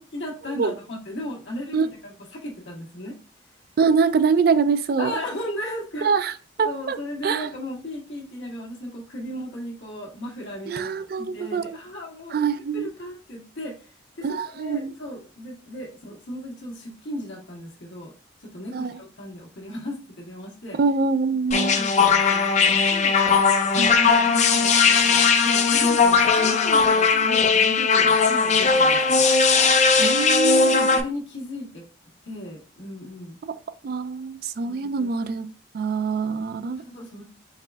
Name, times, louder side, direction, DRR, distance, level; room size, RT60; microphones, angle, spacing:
voice 1, 0.0-3.2 5.0-6.1 6.6-12.5 12.7-13.8 14.2-18.1 18.4-20.8 21.4-23.2 24.3-29.2 30.6-31.8 32.2-33.4 34.6-35.1 36.5-37.2, left 1 dB, 80° left, 1.5 m, -36 dB
voice 2, 3.8-5.1 6.0-6.3 6.6-7.0 7.2-7.5 10.7-11.8 12.3-12.9 14.2-14.9 18.7-19.0 20.8-21.8 23.8-24.3 26.5-27.4 30.0-31.0 33.4-33.5 33.8-35.5 35.7-36.8, right 5 dB, 50° right, 0.3 m, -24 dB
sound 1, 21.5-31.0, left 5 dB, 40° left, 0.4 m, -18 dB
4.8 x 3.4 x 2.2 m
head